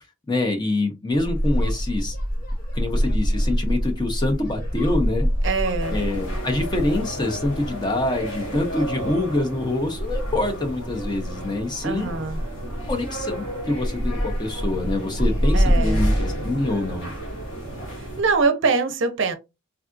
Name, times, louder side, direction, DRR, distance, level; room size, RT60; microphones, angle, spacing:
voice 1, 0.3-2.2 2.7-5.3 5.9-12.1 12.9-17.1, left 2 dB, 20° left, 0.5 m, -25 dB
sound 1, 1.1-18.5, equal, 40° left, 0.9 m, -27 dB
Wind, 1.9-11.6, left 3 dB, 80° left, 0.8 m, -42 dB
voice 2, 5.4-6.0 11.8-12.4 15.5-16.1 18.0-19.3, right 4 dB, 55° right, 0.5 m, -23 dB
sound 2, 5.8-18.2, right 1 dB, 60° left, 1.8 m, -32 dB
3.5 x 2.3 x 2.4 m
head